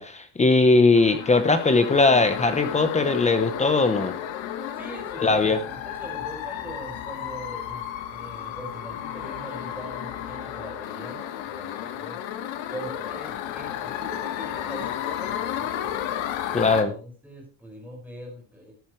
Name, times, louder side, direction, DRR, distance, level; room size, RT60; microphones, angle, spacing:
voice 1, 0.0-4.1 5.2-5.6 16.5-16.9, left 3 dB, 15° left, 9 dB, 0.9 m, -20 dB
sound 1, 0.9-16.8, left 10 dB, 80° left, 1.8 m, -33 dB
voice 2, 4.7-7.8 8.1-12.2 12.7-16.0 16.5-18.7, right 1 dB, 5° right, -1 dB, 5.7 m, -41 dB
13.5 x 11.0 x 3.2 m, 0.34 s
cardioid pair, 170°, 45 cm